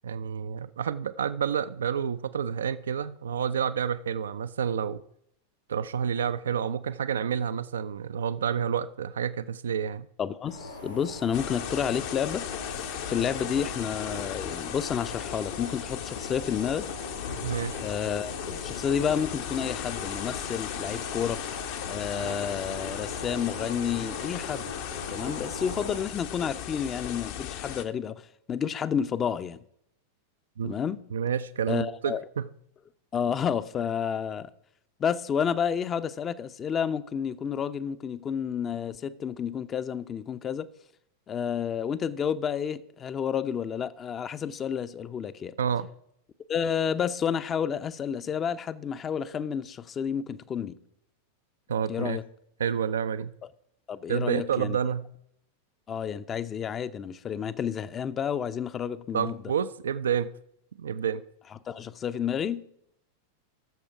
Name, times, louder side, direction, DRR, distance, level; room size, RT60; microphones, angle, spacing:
voice 1, 0.0-5.0 5.7-10.1 17.4-17.9 30.6-30.8 31.1-32.4 45.6-45.9 51.7-52.2 52.6-53.3 54.1-55.1 59.1-60.3 60.8-61.2, right 7 dB, 65° right, 0.4 m, -29 dB
voice 2, 10.2-12.5 13.1-16.8 17.8-21.4 21.9-24.7 25.1-28.2 28.5-29.6 30.6-31.0 31.7-32.2 33.1-34.5 35.0-40.7 41.3-45.6 46.5-50.8 51.9-52.2 53.9-54.8 55.9-59.4 61.7-62.6, left 8 dB, 25° left, 0.5 m, -30 dB
sound 1, 10.5-26.0, left 2 dB, 80° left, 5.1 m, -40 dB
sound 2, 11.3-27.8, left 10 dB, 50° left, 0.8 m, -37 dB
14.0 x 6.9 x 4.8 m
figure-of-eight pair, 90°, 0 cm